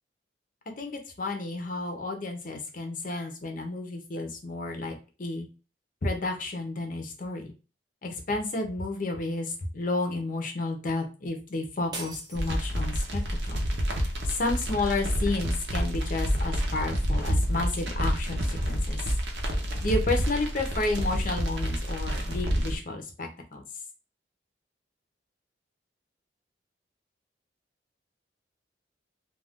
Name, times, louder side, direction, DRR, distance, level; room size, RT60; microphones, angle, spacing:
voice 1, 0.8-5.5 6.0-7.5 8.0-13.6 14.3-19.0 19.8-23.6, left 2 dB, 45° left, 4 dB, 0.6 m, -31 dB
sound 1, 11.9-13.2, right 2 dB, 25° right, 0.6 m, -41 dB
sound 2, 12.3-22.8, equal, 65° right, 0.7 m, -28 dB
2.4 x 2.3 x 3.4 m, 0.34 s
head